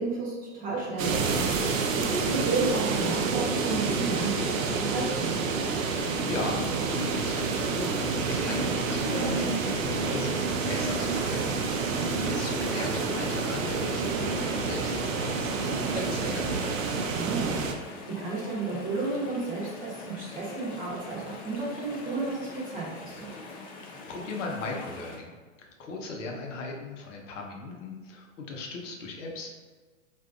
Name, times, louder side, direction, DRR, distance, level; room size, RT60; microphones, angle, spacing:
voice 1, 0.0-5.3 11.9-12.2 17.2-23.3, right 3 dB, 20° right, -6 dB, 0.9 m, -32 dB
sound 1, 1.0-17.7, right 4 dB, 75° right, 0.6 m, -28 dB
voice 2, 5.9-11.6 12.1-16.9 23.9-29.5, left 3 dB, 65° left, 0 dB, 0.8 m, -38 dB
Chatter / Stream, 8.9-25.2, left 2 dB, 30° left, 0.4 m, -42 dB
3.6 x 2.6 x 2.4 m, 1.4 s
hypercardioid pair, 135°, 40 cm